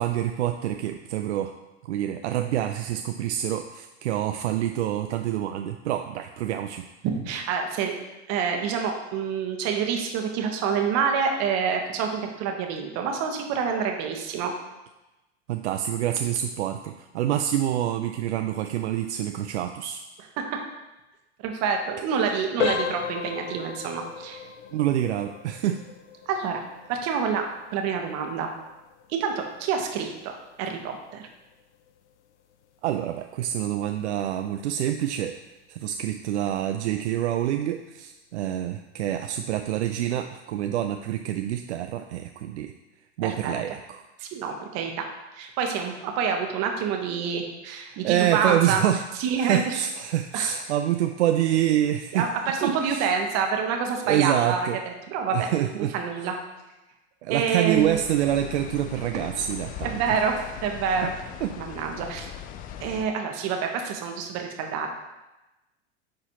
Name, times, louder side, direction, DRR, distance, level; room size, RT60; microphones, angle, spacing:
voice 1, 0.0-1.5 1.8-6.9 15.5-20.0 24.7-25.8 32.8-42.7 43.2-44.0 47.9-49.0 49.4-52.3 52.6-53.1 54.1-54.8 55.3-55.9 57.2-60.0 60.4-60.5 61.4-61.5, right 11 dB, 75° right, 6 dB, 0.5 m, -26 dB
voice 2, 7.0-8.0 8.3-14.5 20.4-20.6 21.4-24.4 26.3-26.6 26.9-27.5 27.7-28.5 29.1-31.3 43.2-43.5 44.2-45.0 45.3-48.8 49.2-49.8 50.3-50.5 52.1-56.3 57.3-58.0 59.8-61.1 61.6-62.3 62.8-65.0, right 6 dB, 45° right, 3 dB, 1.2 m, -27 dB
sound 1, 22.6-33.3 33.6-33.8 34.4-34.5 35.0-35.2, left 7 dB, 80° left, 0.6 m, -36 dB
sound 2, 57.7-63.0, left 9 dB, 25° left, 0.3 m, -40 dB
10.0 x 4.0 x 2.8 m, 1.0 s
hypercardioid pair, 95°, 35 cm